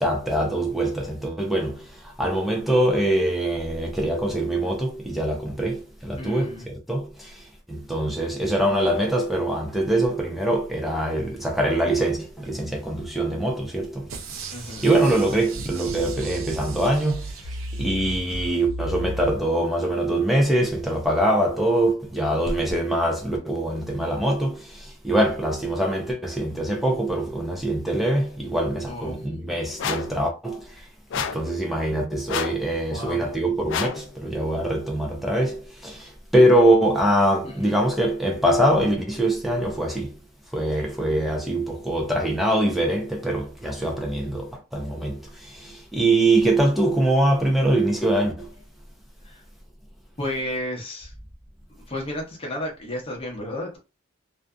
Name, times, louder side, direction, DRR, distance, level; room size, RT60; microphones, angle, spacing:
voice 1, 0.0-14.1 14.4-30.9 31.1-40.2 40.5-48.5, right 1 dB, ahead, 0.5 m, -23 dB
voice 2, 6.2-6.7 14.5-14.9 28.9-29.3 32.9-33.2 37.4-37.7 49.2-49.4 50.2-51.1 51.9-53.8, left 1 dB, 25° left, 0.8 m, -32 dB
sound 1, 14.0-19.3, equal, 85° left, 0.9 m, -35 dB
sound 2, 14.1-18.5 19.0-19.1, right 5 dB, 80° right, 0.5 m, -39 dB
sound 3, 29.8-30.2 31.1-31.5 32.3-32.7 33.7-34.1, left 7 dB, 65° left, 0.3 m, -29 dB
2.6 x 2.3 x 2.3 m
head